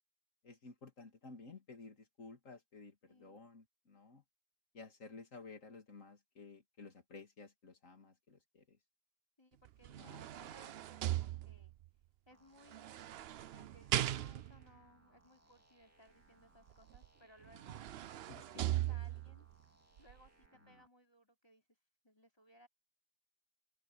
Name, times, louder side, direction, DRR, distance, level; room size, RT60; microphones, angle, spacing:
voice 1, 0.4-4.2 4.7-8.8 10.0-10.3 18.3-18.6 20.6-20.8, left 4 dB, 65° left, 2.9 m, -54 dB
voice 2, 3.1-3.4 9.4-11.7 12.3-13.1 13.5-17.9 18.4-19.5 20.0-21.8 22.0-22.7, equal, 15° left, 3.9 m, -64 dB
shower door glass slide open close rattle, 9.6-11.9 12.7-14.7 16.9-17.0 17.4-19.4 20.0-20.1, right 13 dB, 65° right, 0.6 m, -39 dB
sound 1, 12.3-20.9, right 1 dB, 10° right, 2.6 m, -70 dB
open air
omnidirectional pair, 1.5 m